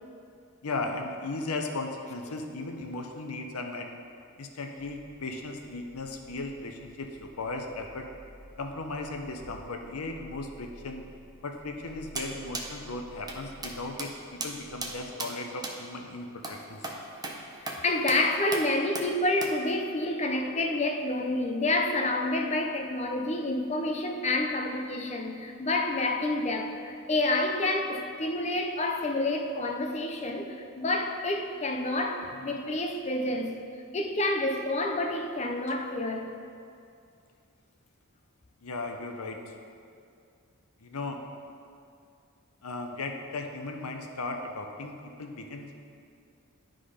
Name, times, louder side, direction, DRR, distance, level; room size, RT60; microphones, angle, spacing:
voice 1, 0.6-3.9 4.4-8.1 8.6-11.0 11.4-16.8 38.6-39.4 40.8-41.2 42.6-45.7, left 2 dB, 75° left, 0.8 m, -36 dB
sound 1, 4.8-15.0, equal, 50° left, 1.7 m, -53 dB
sound 2, 12.2-12.3 12.5-12.7 13.3-13.4 13.6-13.7 14.0-14.1 14.4-14.5 14.8-14.9 15.2-15.3 15.6-15.8 16.4-16.6 16.8-17.0 17.2-17.4 17.7-17.8 18.1-18.2 18.5-18.7 19.0-19.1 19.4-19.5, right 3 dB, 20° right, 0.7 m, -35 dB
voice 2, 17.6-33.6 33.9-36.3, left 2 dB, 30° left, 0.6 m, -28 dB
11.5 x 3.8 x 5.0 m
head